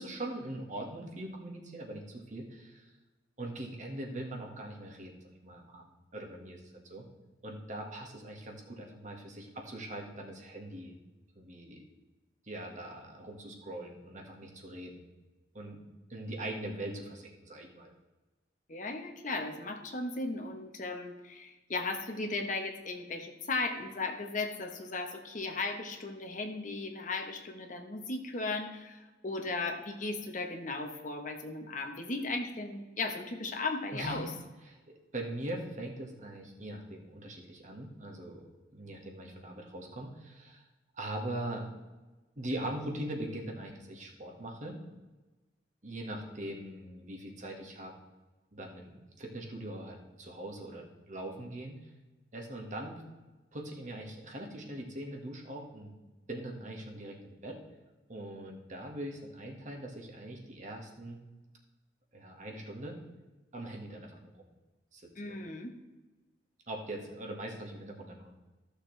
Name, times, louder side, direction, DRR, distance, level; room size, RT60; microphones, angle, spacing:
voice 1, 0.0-2.9 3.4-5.8 6.1-7.1 7.4-11.0 11.4-11.8 12.5-15.1 15.5-15.8 16.1-17.9 33.9-34.3 34.6-40.6 40.9-41.7 42.4-44.8 45.8-47.9 48.5-51.9 52.3-53.0 53.5-55.9 56.3-57.6 58.1-61.2 62.1-63.0 63.5-64.3 64.9-65.4 66.7-68.3, right 1 dB, 45° right, 0 dB, 1.7 m, -41 dB
voice 2, 18.7-34.3 65.1-65.7, left 3 dB, 45° left, 4 dB, 1.2 m, -36 dB
14.5 x 6.7 x 3.3 m, 1.2 s
head